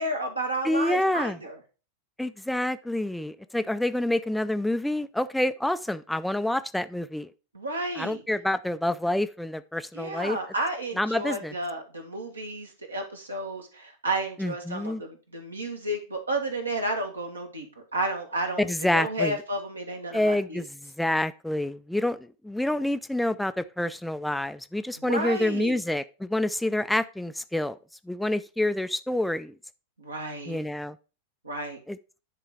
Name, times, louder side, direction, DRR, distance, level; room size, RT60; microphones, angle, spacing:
voice 1, 0.0-1.6 7.5-8.2 9.9-20.6 25.0-25.8 30.0-30.6 31.4-31.8, right 1 dB, 80° right, 1.8 m, -32 dB
voice 2, 0.6-1.4 2.2-7.3 8.0-10.4 11.0-11.5 14.4-15.0 18.6-19.3 20.1-22.2 22.4-27.8 28.1-29.5 30.5-31.0 31.9-32.0, left 1 dB, 5° left, 0.4 m, -27 dB
10.0 x 3.8 x 4.6 m
figure-of-eight pair, 90°, 0 cm